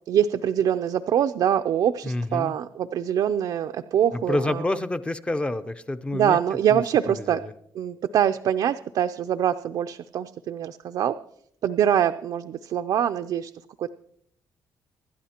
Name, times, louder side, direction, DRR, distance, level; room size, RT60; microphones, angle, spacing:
voice 1, 0.1-4.6 6.1-7.4 7.7-11.2 11.6-13.5 13.8-13.9, right 9 dB, 60° right, 7 dB, 0.4 m, -24 dB
voice 2, 2.0-2.5 4.1-6.4 6.7-6.8 7.2-7.5, left 2 dB, 15° left, 11 dB, 0.5 m, -28 dB
25.5 x 12.0 x 2.9 m, 0.69 s
cardioid pair, 170°, 8 cm